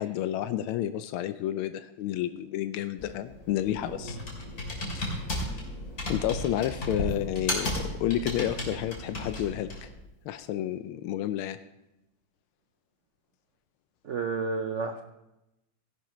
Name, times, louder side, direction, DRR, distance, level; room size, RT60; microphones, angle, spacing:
voice 1, 0.0-4.2 4.9-5.1 6.1-9.9 10.2-11.6, left 12 dB, 85° left, 11 dB, 1.4 m, -30 dB
Computer keyboard, 3.0-10.0, left 1 dB, 45° left, 3.3 m, -34 dB
voice 2, 14.0-15.0, right 4 dB, 80° right, 6 dB, 0.6 m, -31 dB
17.0 x 11.0 x 3.1 m, 0.90 s
omnidirectional pair, 2.2 m